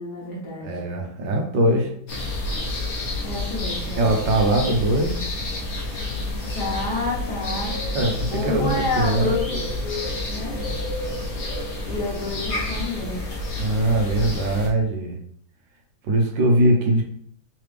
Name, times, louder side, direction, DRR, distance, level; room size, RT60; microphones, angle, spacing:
voice 1, 0.0-0.8 3.2-4.2 6.5-7.8 8.3-10.6 11.8-13.2, left 2 dB, 60° left, -3 dB, 1.5 m, -29 dB
voice 2, 0.6-1.9 4.0-5.2 7.9-9.3 13.6-15.2 16.0-17.0, right 1 dB, 70° right, 2 dB, 1.3 m, -21 dB
sound 1, 2.1-14.7, left 2 dB, 45° left, 1.1 m, -29 dB
3.8 x 3.3 x 3.2 m, 0.64 s
omnidirectional pair, 2.1 m